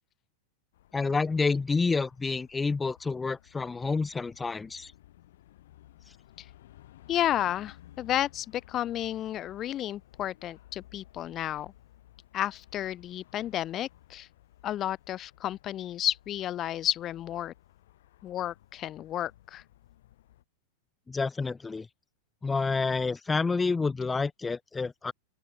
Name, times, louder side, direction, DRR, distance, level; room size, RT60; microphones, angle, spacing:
sound 1, 0.7-20.4, left 14 dB, 55° left, 4.5 m, -57 dB
voice 1, 0.9-4.9 21.1-21.9 22.4-25.1, left 4 dB, 10° left, 0.9 m, -29 dB
voice 2, 7.1-11.7 12.3-14.3 14.6-17.5 18.2-19.6, left 12 dB, 30° left, 0.5 m, -32 dB
open air
figure-of-eight pair, 90°, 0 cm